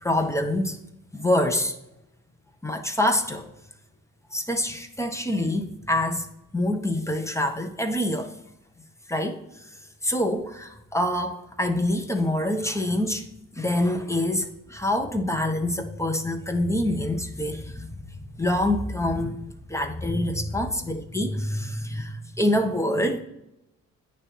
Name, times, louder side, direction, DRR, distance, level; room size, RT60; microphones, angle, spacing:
voice 1, 0.0-0.8 1.1-1.8 2.6-3.4 4.3-6.3 6.5-8.3 9.1-9.7 10.0-13.2 13.5-17.9 18.1-19.4 19.7-23.2, left 1 dB, 10° left, 5 dB, 1.0 m, -26 dB
8.8 x 3.3 x 4.3 m, 0.86 s
cardioid pair, 65°, 33 cm